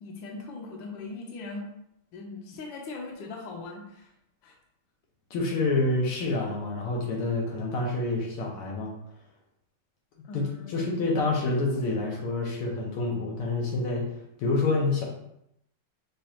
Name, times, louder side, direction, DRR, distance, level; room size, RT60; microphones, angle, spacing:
voice 1, 0.0-1.6 2.1-4.1 4.4-4.5 10.3-10.9, left 3 dB, 70° left, 0 dB, 1.4 m, -40 dB
voice 2, 5.3-8.9 10.3-14.1 14.4-15.0, left 2 dB, 85° left, -2 dB, 1.9 m, -27 dB
6.4 x 2.4 x 2.8 m, 0.78 s
omnidirectional pair, 2.4 m